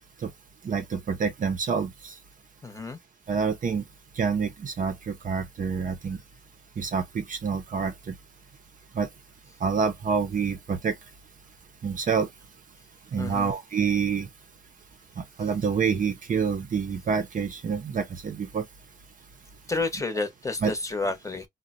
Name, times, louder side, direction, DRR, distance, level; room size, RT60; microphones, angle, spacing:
voice 1, 0.6-2.2 3.3-3.8 4.2-6.2 6.8-8.1 8.9-9.1 9.6-10.9 11.8-12.3 13.1-14.3 15.2-18.6 20.6-20.7, right 6 dB, 40° right, 0.6 m, -27 dB
voice 2, 2.6-3.0 13.2-13.5 19.7-21.4, left 3 dB, 15° left, 0.9 m, -30 dB
3.8 x 2.1 x 2.5 m
cardioid pair, 90°, 20 cm